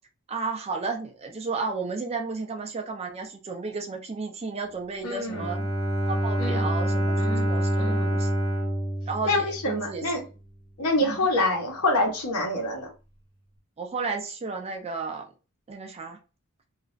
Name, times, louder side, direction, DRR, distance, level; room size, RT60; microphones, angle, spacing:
voice 1, 0.3-5.6 6.0-8.3 9.1-10.1 11.1-11.3 13.8-15.3 15.7-16.2, right 4 dB, 30° right, 4 dB, 0.5 m, -33 dB
voice 2, 5.0-5.5 6.4-6.7 7.1-7.5 7.8-8.2 9.2-10.2 10.8-12.9, left 2 dB, 85° left, 1 dB, 0.9 m, -26 dB
Bowed string instrument, 5.3-10.0, right 1 dB, 25° left, 0.8 m, -26 dB
2.4 x 2.1 x 2.4 m, 0.32 s
head